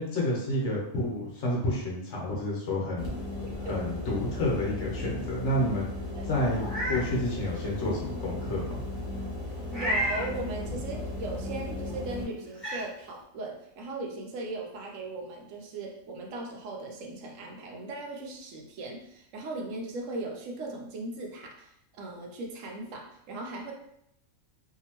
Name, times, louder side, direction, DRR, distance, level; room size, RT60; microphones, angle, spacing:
voice 1, 0.0-3.1 3.6-5.9 6.3-8.8, left 1 dB, 65° left, -4 dB, 1.1 m, -30 dB
sound 1, 3.0-12.2, left 2 dB, 40° left, 1.0 m, -36 dB
voice 2, 3.4-4.0 6.1-6.3 9.5-21.7 22.0-23.7, right 2 dB, 75° right, 1 dB, 0.9 m, -38 dB
Meow, 6.5-7.0 7.5-7.6 9.7-10.3 11.9-12.0 12.5-12.8, equal, ahead, 1.2 m, -30 dB
2.8 x 2.5 x 2.9 m, 0.76 s
omnidirectional pair, 1.4 m